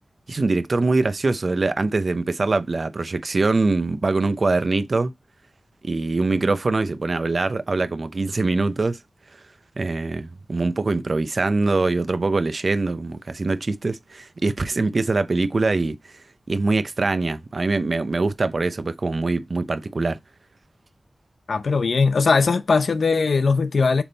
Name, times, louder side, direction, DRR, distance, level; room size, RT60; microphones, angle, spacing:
voice 1, 0.3-5.1 5.8-9.0 9.8-16.1 16.5-20.2, right 3 dB, 55° right, 0.8 m, -23 dB
voice 2, 21.5-24.0, left 4 dB, 85° left, 0.7 m, -19 dB
7.1 x 3.7 x 4.0 m
wide cardioid pair, 90°, 0 cm